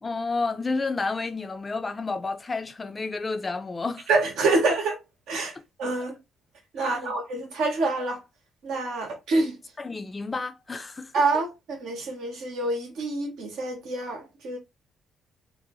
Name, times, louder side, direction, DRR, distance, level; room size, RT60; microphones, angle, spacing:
voice 1, 0.0-4.1 6.8-7.2 9.8-11.1, left 3 dB, 30° left, 0.5 m, -31 dB
voice 2, 4.1-5.0 5.3-5.5 5.8-6.2 6.7-8.2 8.6-9.5 11.1-14.6, right 3 dB, 70° right, 0.9 m, -26 dB
2.7 x 2.1 x 2.8 m
hypercardioid pair, 45°, 0 cm